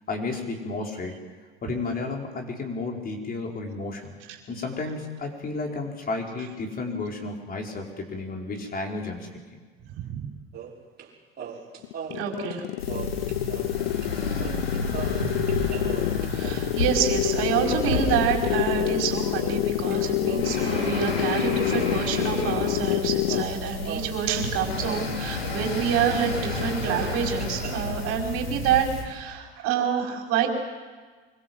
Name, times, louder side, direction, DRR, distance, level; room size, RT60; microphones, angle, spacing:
voice 1, 0.1-1.2 1.6-4.1 4.5-9.4, left 3 dB, 30° left, 1 dB, 5.4 m, -32 dB
voice 2, 10.0-10.3 12.1-12.6 16.3-30.5, right 8 dB, 50° right, 1 dB, 5.3 m, -27 dB
sound 1, 10.5-11.1 11.4-13.8 14.0-14.1 14.4-20.0 20.3-21.5 21.7-23.0 23.3-25.7 25.9-26.0 26.3-27.8, right 7 dB, 35° right, 6.0 m, -39 dB
sound 2, 11.8-23.6, left 18 dB, 60° left, 0.8 m, -28 dB
sound 3, 12.8-29.0, left 3 dB, 85° left, 4.7 m, -31 dB
26.0 x 24.5 x 7.9 m, 1.4 s
figure-of-eight pair, 75°, 29 cm